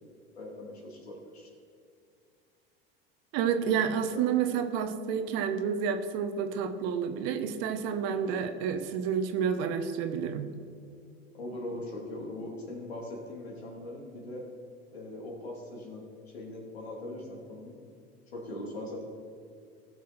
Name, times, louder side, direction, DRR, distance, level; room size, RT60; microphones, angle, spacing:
voice 1, 0.0-1.5 4.1-4.3 11.3-14.5 14.9-16.0 16.3-17.7 18.3-19.0, left 1 dB, 85° left, -1 dB, 2.7 m, -40 dB
voice 2, 3.3-10.5, right 7 dB, 55° right, 8 dB, 1.2 m, -29 dB
16.5 x 6.1 x 4.4 m, 2.4 s
hypercardioid pair, 85°, 31 cm